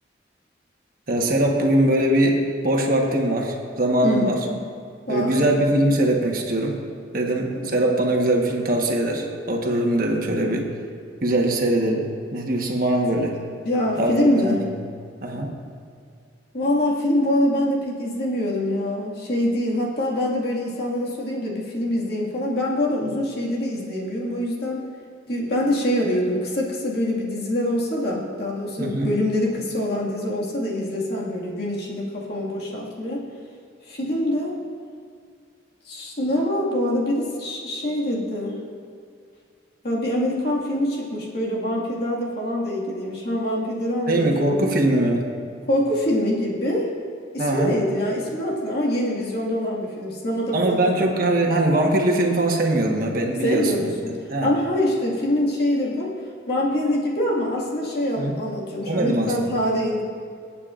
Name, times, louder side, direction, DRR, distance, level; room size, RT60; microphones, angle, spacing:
voice 1, 1.1-4.4 5.1-6.8 7.1-10.7 11.2-12.0 12.3-13.4 14.0-14.2 14.4-14.6 15.2-15.5 28.8-29.1 44.1-45.3 47.4-47.7 50.5-53.9 54.3-54.5 58.2-58.4 58.8-59.5, right 1 dB, 50° right, 0 dB, 1.3 m, -21 dB
voice 2, 4.0-4.6 5.1-5.5 7.6-7.8 13.6-14.7 16.5-24.8 25.3-33.2 33.9-34.6 35.9-38.6 39.8-44.7 45.7-46.9 47.3-51.1 53.4-56.1 56.5-60.0, left 1 dB, 55° left, -4 dB, 2.0 m, -24 dB
24.5 x 8.5 x 2.5 m, 2.2 s
head